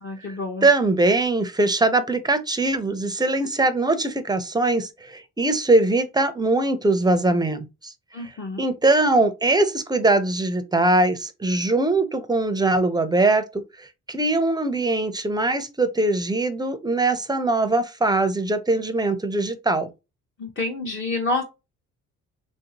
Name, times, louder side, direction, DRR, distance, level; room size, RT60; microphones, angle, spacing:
voice 1, 0.0-0.7 8.1-8.6 20.4-21.4, left 2 dB, 40° left, 0.7 m, -28 dB
voice 2, 0.6-7.9 8.2-8.3 8.6-19.9, right 2 dB, 15° right, 0.5 m, -21 dB
3.1 x 2.6 x 2.8 m
cardioid pair, 90°, 30 cm